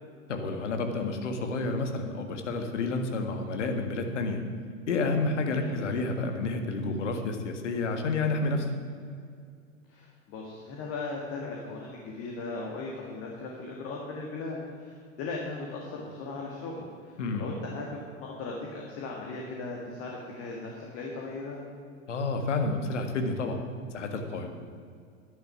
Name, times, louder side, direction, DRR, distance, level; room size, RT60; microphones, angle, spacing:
voice 1, 0.3-4.4 4.9-8.7 17.2-17.5 22.1-23.6 23.9-24.5, left 3 dB, 60° left, 5 dB, 1.7 m, -30 dB
voice 2, 9.9-21.6, left 3 dB, 35° left, -1 dB, 1.9 m, -38 dB
11.5 x 10.0 x 6.0 m, 2.2 s
figure-of-eight pair, 95°, 40 cm